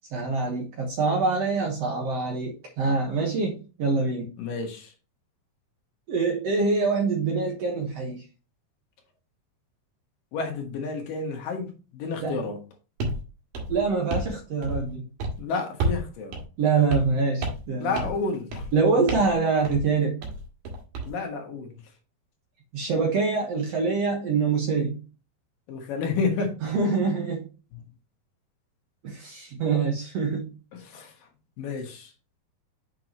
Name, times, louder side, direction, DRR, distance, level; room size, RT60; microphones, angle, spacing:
voice 1, 0.1-4.3 6.1-8.2 12.2-12.4 13.7-15.0 16.6-17.9 18.7-20.2 22.7-25.0 26.6-27.5 29.0-30.5, right 4 dB, 55° right, 2.0 m, -25 dB
voice 2, 4.4-4.9 10.3-12.6 15.4-16.4 17.8-18.7 21.1-21.8 25.7-26.6 27.7-27.8 30.7-31.3 31.6-32.1, left 4 dB, 70° left, 2.9 m, -30 dB
sound 1, 13.0-13.2 13.5-14.3 14.6-14.9 15.2-15.4 15.8-16.1 16.3-16.4 16.9-17.2 17.4-17.7 18.0-18.2 18.5-18.7 19.1-19.4 19.7-19.9 20.2-21.1, right 2 dB, 85° right, 3.9 m, -30 dB
7.6 x 5.7 x 2.9 m
omnidirectional pair, 4.2 m